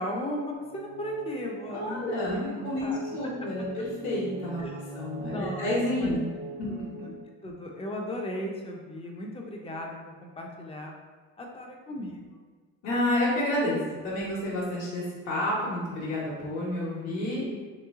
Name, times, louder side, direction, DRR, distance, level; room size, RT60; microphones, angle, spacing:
voice 1, 0.0-3.0 4.6-4.7 5.2-6.2 6.7-7.1 7.4-10.9 11.4-12.4, left 1 dB, 20° left, 0 dB, 0.5 m, -36 dB
sound 1, 0.5-7.1, right 3 dB, 35° right, 0.5 m, -41 dB
voice 2, 1.7-6.3 6.6-6.7 12.8-13.8 14.0-17.5, left 1 dB, 65° left, -7 dB, 1.1 m, -30 dB
3.1 x 3.0 x 3.6 m, 1.5 s
cardioid pair, 145°, 29 cm